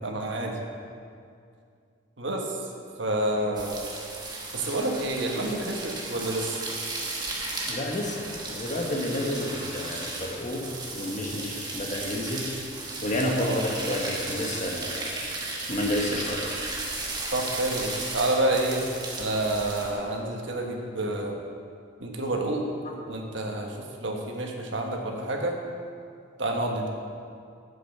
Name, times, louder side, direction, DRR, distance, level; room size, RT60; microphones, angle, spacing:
voice 1, 0.0-0.6 2.2-2.6 3.0-3.8 4.5-6.6 13.4-13.7 17.3-18.9 19.2-21.4 22.0-22.6 23.1-25.6 26.4-26.9, right 1 dB, 70° right, 1 dB, 1.4 m, -28 dB
sound 1, 3.6-19.9, right 2 dB, 20° right, 1.3 m, -35 dB
voice 2, 7.6-10.6 10.9-12.5 13.0-15.1 15.7-16.4 22.8-23.0, left 1 dB, 40° left, 0 dB, 1.4 m, -30 dB
9.2 x 7.8 x 6.8 m, 2.3 s
head